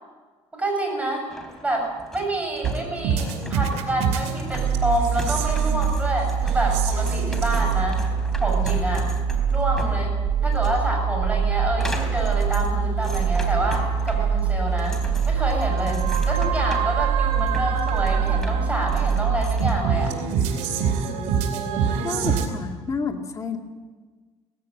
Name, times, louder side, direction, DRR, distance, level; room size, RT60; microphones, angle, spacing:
voice 1, 0.5-1.2 1.6-8.0 8.4-9.1 9.5-15.0 15.3-20.1, right 1 dB, 10° right, 2 dB, 6.9 m, -28 dB
sound 1, 1.3-19.7, equal, 5° left, 3.4 m, -38 dB
sound 2, 2.6-22.5, right 6 dB, 85° right, 2.6 m, -24 dB
voice 2, 22.0-23.6, left 4 dB, 30° left, 2 dB, 2.4 m, -29 dB
18.0 x 16.0 x 8.9 m, 1.4 s
cardioid pair, 115°, 11 cm